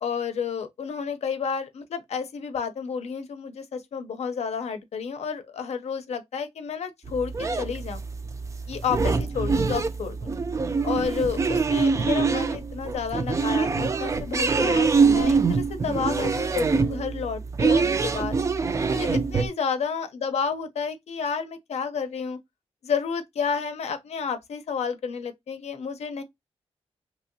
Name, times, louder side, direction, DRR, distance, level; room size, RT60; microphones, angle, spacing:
voice 1, 0.0-8.0 8.7-10.3 10.8-18.4 18.9-22.4 22.8-26.2, left 6 dB, 75° left, 0.6 m, -31 dB
sound 1, 7.1-19.5, right 4 dB, 30° right, 0.3 m, -24 dB
2.9 x 2.6 x 2.6 m
wide cardioid pair, 135°, 11 cm